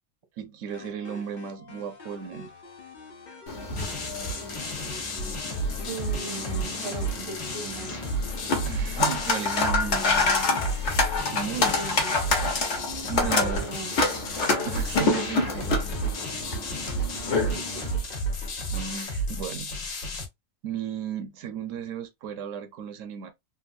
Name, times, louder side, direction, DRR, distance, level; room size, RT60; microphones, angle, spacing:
voice 1, 0.4-2.6 8.6-10.8 11.3-11.8 13.0-13.7 14.7-15.8 18.7-19.8 20.6-23.3, right 8 dB, 80° right, 1.0 m, -35 dB
sound 1, 0.7-19.0, left 2 dB, 40° left, 0.9 m, -46 dB
sound 2, 3.5-17.9, left 3 dB, 65° left, 1.3 m, -28 dB
sound 3, 3.8-20.3, right 1 dB, 80° left, 1.4 m, -32 dB
voice 2, 5.9-8.2 11.6-12.2 13.2-14.1 17.3-18.1, right 4 dB, 35° right, 0.6 m, -38 dB
3.4 x 2.5 x 2.5 m
omnidirectional pair, 1.3 m